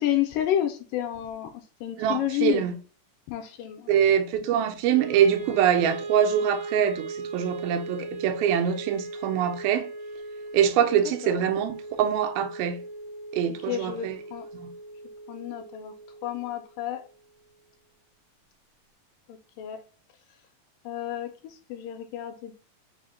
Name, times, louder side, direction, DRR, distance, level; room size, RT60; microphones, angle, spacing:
voice 1, 0.0-2.7 3.3-3.9 10.9-11.4 13.6-14.5 15.3-15.9 16.2-17.0 19.3-19.8 20.9-22.6, left 11 dB, 80° left, 2.0 m, -30 dB
voice 2, 2.0-2.7 3.9-9.9 10.5-12.8 13.3-14.2 14.5-14.7, right 9 dB, 90° right, 2.5 m, -24 dB
Wind instrument woodwind instrument, 4.9-17.1, right 3 dB, 70° right, 1.2 m, -38 dB
5.5 x 2.1 x 3.7 m
omnidirectional pair, 4.1 m